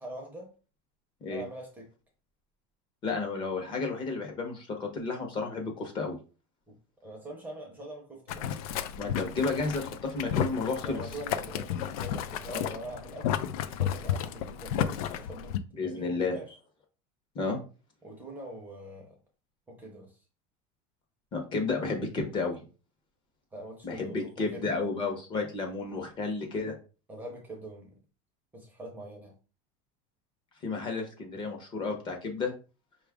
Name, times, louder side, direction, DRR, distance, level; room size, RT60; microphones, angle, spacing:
voice 1, 0.0-0.5 1.2-1.9 6.7-8.5 10.8-13.4 13.7-16.5 18.0-19.2 19.7-20.2 23.5-24.8 27.1-28.0 28.5-29.3, right 1 dB, 10° right, 0.6 m, -43 dB
voice 2, 3.0-6.2 9.0-11.0 12.5-12.7 15.8-16.4 17.3-17.6 21.3-22.6 23.8-26.7 30.6-32.5, left 3 dB, 25° left, 0.8 m, -32 dB
Boiling, 8.3-15.6, left 9 dB, 80° left, 0.4 m, -33 dB
5.0 x 2.4 x 3.5 m
cardioid pair, 175°, 19 cm